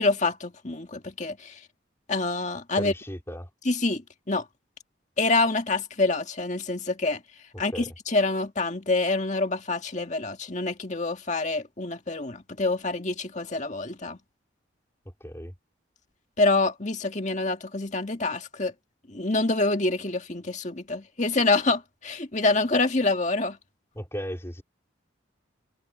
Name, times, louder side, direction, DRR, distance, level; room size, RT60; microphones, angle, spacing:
voice 1, 0.0-1.6 2.1-2.9 3.7-4.5 5.2-7.2 7.6-14.2 16.4-18.7 19.1-23.6, left 3 dB, 40° left, 1.9 m, -26 dB
voice 2, 2.8-3.5 7.5-7.9 15.2-15.5 24.0-24.6, equal, 15° left, 3.7 m, -35 dB
head